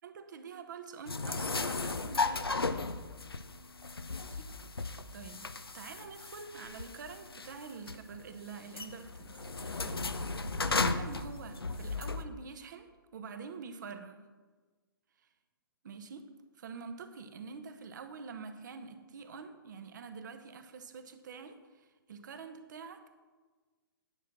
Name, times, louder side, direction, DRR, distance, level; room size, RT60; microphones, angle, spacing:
voice 1, 0.0-3.0 4.3-4.4 4.7-5.5 5.7-14.3 15.8-16.2 16.5-23.1, right 5 dB, 50° right, 8 dB, 1.0 m, -47 dB
sound 1, 1.1-12.2, left 3 dB, 80° left, 0.6 m, -35 dB
10.0 x 5.9 x 6.1 m, 1.4 s
figure-of-eight pair, 120°, 12 cm